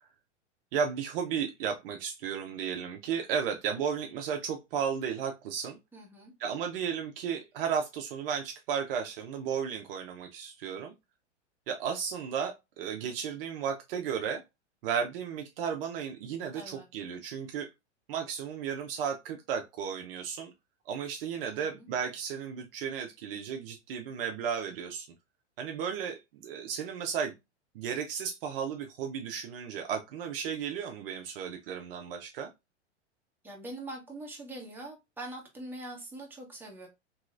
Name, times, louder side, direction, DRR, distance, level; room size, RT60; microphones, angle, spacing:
voice 1, 0.7-5.8 6.4-10.9 11.7-14.4 14.8-17.7 18.1-20.5 20.9-25.1 25.6-27.3 27.7-32.5, right 7 dB, 50° right, 0.6 m, -34 dB
voice 2, 5.9-6.3 16.5-16.9 21.5-21.9 33.4-36.9, right 1 dB, 5° right, 1.0 m, -43 dB
3.0 x 2.9 x 2.4 m
hypercardioid pair, 100°, 36 cm